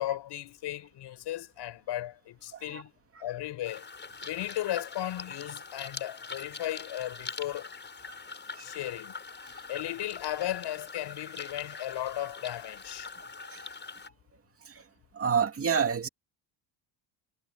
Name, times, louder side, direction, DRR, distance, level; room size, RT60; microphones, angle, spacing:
voice 1, 0.0-2.9 3.2-3.9 4.2-7.7 8.6-9.1 9.7-13.1, left 13 dB, 60° left, 6.4 m, -35 dB
voice 2, 2.5-2.8 8.1-8.2 8.6-8.7 13.1-13.7 14.7-14.8 15.1-16.1, right 6 dB, 30° right, 2.5 m, -30 dB
sound 1, 3.6-14.1, left 4 dB, 25° left, 7.7 m, -43 dB
cardioid pair, 140°, 46 cm